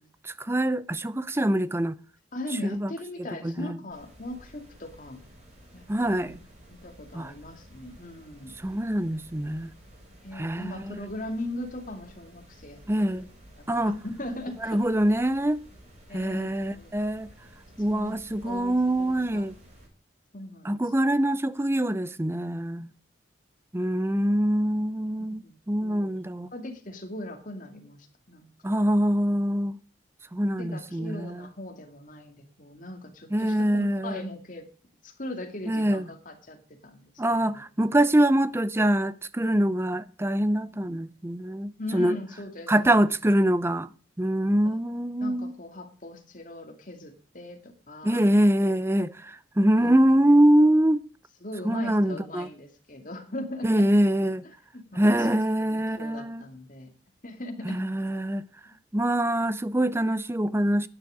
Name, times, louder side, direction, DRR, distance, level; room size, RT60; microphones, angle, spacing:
voice 1, 0.4-1.9 2.6-2.9 3.4-3.8 5.9-6.4 7.1-7.3 8.6-9.7 10.3-11.0 12.9-13.3 13.7-14.0 14.6-15.6 16.1-17.3 17.8-19.6 20.6-22.9 23.7-26.5 28.6-29.8 30.3-31.4 33.3-34.2 35.7-36.0 37.2-42.1 42.7-43.9 44.2-45.5 48.0-51.0 51.6-52.5 53.6-54.4 55.0-56.4 57.6-58.5 58.9-60.9, right 1 dB, 15° right, 0.5 m, -24 dB
voice 2, 2.3-5.2 5.7-6.3 6.7-8.6 10.2-13.2 13.6-14.8 16.1-16.9 17.9-19.4 20.3-20.8 25.4-26.1 26.5-28.5 30.6-34.7 35.0-37.6 41.8-43.0 45.2-48.3 49.8-49.9 51.4-53.9 54.7-55.3 55.6-56.9 57.2-57.8, left 1 dB, 45° left, 2.4 m, -39 dB
sound 1, 3.9-19.9, equal, 35° right, 6.8 m, -52 dB
11.5 x 9.8 x 5.1 m
head